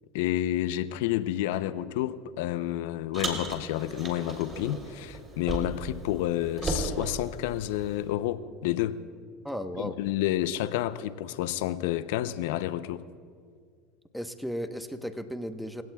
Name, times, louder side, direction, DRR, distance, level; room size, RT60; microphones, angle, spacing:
voice 1, 0.1-9.0 9.8-13.0, left 13 dB, 75° left, 14 dB, 0.6 m, -30 dB
Car, 3.1-6.0 6.2-8.0, right 2 dB, 30° right, 3.5 m, -35 dB
voice 2, 9.4-10.0 14.1-15.8, equal, ahead, 8 dB, 1.1 m, -35 dB
29.5 x 17.0 x 2.4 m, 2.1 s
hypercardioid pair, 90°, 0 cm